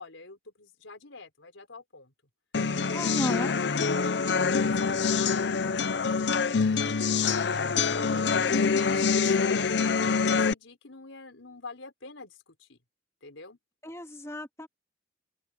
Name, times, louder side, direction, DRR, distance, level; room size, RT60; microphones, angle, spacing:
voice 1, 0.0-2.1 3.5-8.3 8.7-12.8 13.2-13.6, left 3 dB, 90° left, 4.7 m, -46 dB
sound 1, 2.5-10.5, left 5 dB, 60° left, 0.6 m, -25 dB
voice 2, 2.9-3.5 13.8-14.7, left 1 dB, 15° left, 2.6 m, -33 dB
open air
head